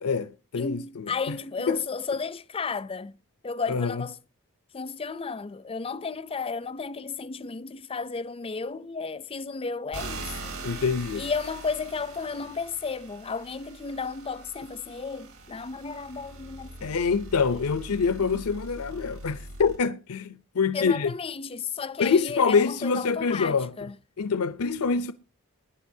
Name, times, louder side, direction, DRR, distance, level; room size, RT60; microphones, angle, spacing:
voice 1, 0.0-0.8 1.3-1.4 1.7-1.8 3.7-4.0 10.6-11.2 16.8-21.1 22.0-23.7 24.2-25.1, left 5 dB, 80° left, 0.6 m, -25 dB
voice 2, 0.6-3.1 3.4-4.2 4.7-10.6 11.1-17.0 20.7-23.9, left 5 dB, 25° left, 0.5 m, -33 dB
sound 1, 9.9-19.8, right 2 dB, 70° right, 5.1 m, -42 dB
20.5 x 10.0 x 2.7 m
head